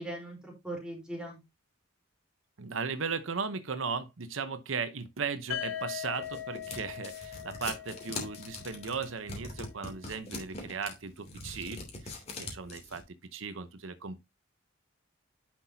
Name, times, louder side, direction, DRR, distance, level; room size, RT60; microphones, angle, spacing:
voice 1, 0.0-1.4, right 1 dB, 5° right, 3.8 m, -39 dB
voice 2, 2.6-14.2, right 5 dB, 75° right, 0.8 m, -37 dB
sound 1, 5.5-9.4, left 10 dB, 85° left, 1.2 m, -40 dB
sound 2, 5.8-13.0, left 2 dB, 30° left, 2.8 m, -42 dB
9.8 x 6.0 x 2.7 m
head